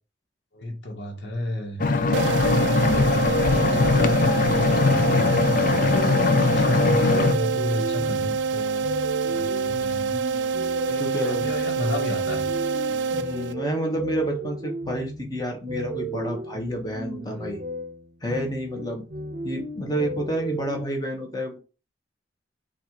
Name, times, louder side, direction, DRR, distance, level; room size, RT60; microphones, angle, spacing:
voice 1, 0.5-1.8 2.8-8.9 9.3-10.2 10.9-12.4 17.2-17.5, left 1 dB, 70° left, 1.2 m, -32 dB
Bathtub Emptying- Underwater, 1.8-7.3, left 4 dB, 45° left, 0.4 m, -21 dB
sound 1, 2.1-13.8, right 5 dB, 80° right, 0.3 m, -26 dB
voice 2, 2.5-2.9 11.0-11.5 13.1-17.6 18.2-19.0 19.4-21.6, equal, 20° left, 0.9 m, -29 dB
sound 2, 7.1-20.8, right 1 dB, 50° right, 0.7 m, -35 dB
4.2 x 2.4 x 4.4 m
head